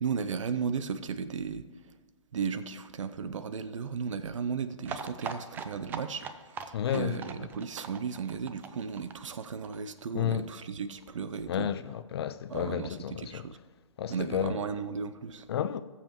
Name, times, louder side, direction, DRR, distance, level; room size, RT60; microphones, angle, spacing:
voice 1, 0.0-1.7 2.3-6.2 6.9-11.7 12.5-13.6 14.1-15.5, right 6 dB, 70° right, 0.7 m, -35 dB
sound 1, 4.8-10.4 10.7-10.8 11.0-11.1 11.3-11.4, right 6 dB, 10° right, 0.4 m, -41 dB
voice 2, 6.7-7.2 10.1-10.5 11.5-13.5 14.0-14.6 15.5-15.8, left 9 dB, 50° left, 0.5 m, -31 dB
19.5 x 7.1 x 3.0 m
hypercardioid pair, 135°, 17 cm